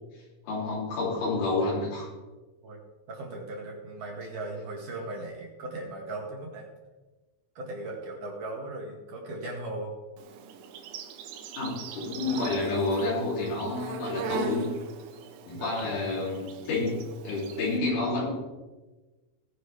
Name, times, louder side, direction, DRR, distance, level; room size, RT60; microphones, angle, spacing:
voice 1, 0.4-2.1 11.6-14.8 15.5-18.3, left 2 dB, 80° left, -7 dB, 5.7 m, -29 dB
voice 2, 3.1-6.7 7.5-9.9 15.5-16.1, right 2 dB, 55° right, -1 dB, 2.8 m, -38 dB
Insect, 10.2-17.8, right 6 dB, 80° right, 3.5 m, -40 dB
18.5 x 10.5 x 3.4 m, 1.2 s
omnidirectional pair, 5.6 m